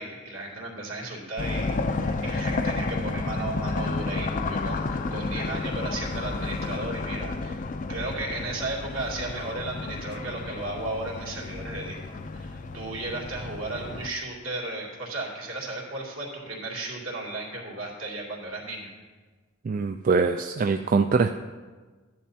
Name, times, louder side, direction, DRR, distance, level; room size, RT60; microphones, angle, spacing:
voice 1, 0.0-7.6 7.9-18.9, right 2 dB, 70° right, -3 dB, 2.6 m, -35 dB
sound 1, 1.4-14.1, left 3 dB, 40° left, 0.4 m, -31 dB
voice 2, 19.6-21.3, right 4 dB, 40° right, 7 dB, 0.3 m, -23 dB
14.5 x 10.5 x 2.8 m, 1.4 s
head